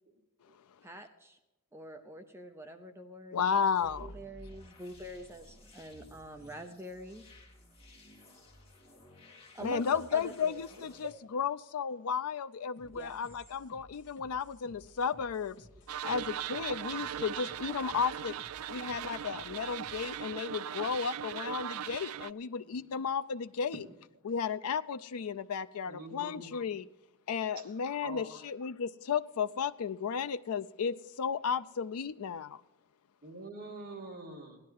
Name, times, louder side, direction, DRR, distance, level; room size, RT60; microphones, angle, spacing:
voice 1, 0.8-1.4 1.7-3.6 4.0-7.2 9.5-10.6 12.8-13.2 22.6-22.9, right 1 dB, 10° right, 0.8 m, -46 dB
voice 2, 3.3-4.1 9.6-15.6 16.0-18.4 18.7-23.8 24.2-26.9 27.3-32.6, left 6 dB, 80° left, 0.4 m, -34 dB
sound 1, 3.7-11.1, left 1 dB, 25° left, 2.8 m, -55 dB
sound 2, 12.8-20.3, left 1 dB, 55° left, 1.3 m, -58 dB
sound 3, 15.9-22.3, right 10 dB, 75° right, 0.4 m, -39 dB
voice 3, 25.9-26.6 27.6-27.7 28.0-28.2 33.2-34.6, right 2 dB, 40° right, 2.8 m, -45 dB
17.0 x 11.0 x 4.7 m
head